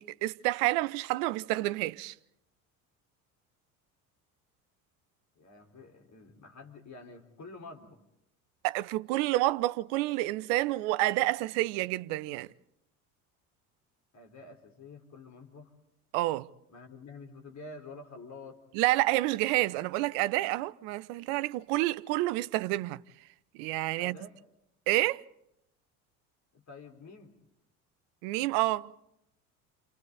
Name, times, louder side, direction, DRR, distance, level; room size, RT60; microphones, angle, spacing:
voice 1, 0.0-2.1 8.6-12.5 16.1-16.5 18.7-23.0 23.5-24.2 24.9-25.2 28.2-28.9, right 18 dB, 65° right, 0.8 m, -29 dB
voice 2, 5.3-8.0 14.1-15.7 16.7-18.6 24.0-24.4 26.5-27.4, left 3 dB, 40° left, 4.6 m, -48 dB
29.5 x 28.5 x 4.1 m
hypercardioid pair, 65°, 44 cm